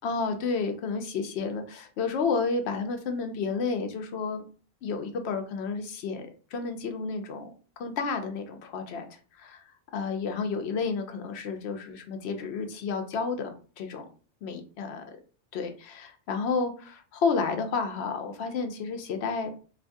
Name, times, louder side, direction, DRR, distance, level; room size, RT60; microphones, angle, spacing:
voice 1, 0.0-4.4 4.8-7.5 7.8-9.6 9.9-14.1 14.4-15.0 15.5-19.5, left 4 dB, 85° left, 6 dB, 0.9 m, -31 dB
3.4 x 2.5 x 2.6 m, 0.39 s
omnidirectional pair, 1.1 m